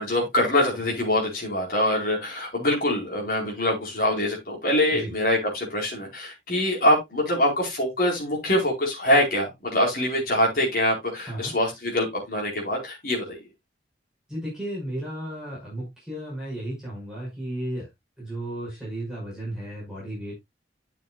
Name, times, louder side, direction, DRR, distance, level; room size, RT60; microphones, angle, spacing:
voice 1, 0.0-13.4, left 1 dB, 50° left, 4.4 m, -24 dB
voice 2, 14.3-17.9 18.2-20.3, right 1 dB, 5° right, 5.7 m, -34 dB
12.0 x 6.8 x 2.4 m
head